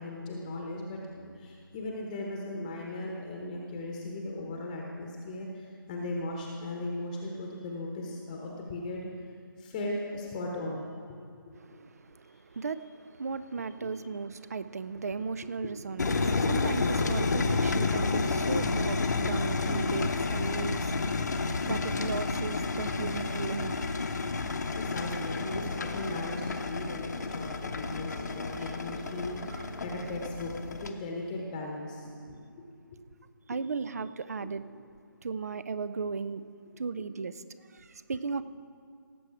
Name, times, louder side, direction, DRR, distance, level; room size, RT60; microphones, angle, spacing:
voice 1, 0.0-9.1 9.6-10.8 11.1-11.2 12.2-12.6 13.8-13.9 15.6-15.7 23.9-32.6 34.4-34.5, left 2 dB, 20° left, -1 dB, 1.0 m, -38 dB
voice 2, 11.6-23.9 29.5-29.6 33.5-34.6 35.2-36.4 36.8-37.3 37.7-38.4, right 5 dB, 45° right, 14 dB, 0.4 m, -36 dB
sound 1, 16.0-30.9, left 3 dB, 50° left, 0.8 m, -30 dB
sound 2, 23.3-30.1, right 1 dB, 65° right, 3.6 m, -49 dB
17.5 x 7.7 x 4.8 m, 2.2 s
figure-of-eight pair, 155°, 12 cm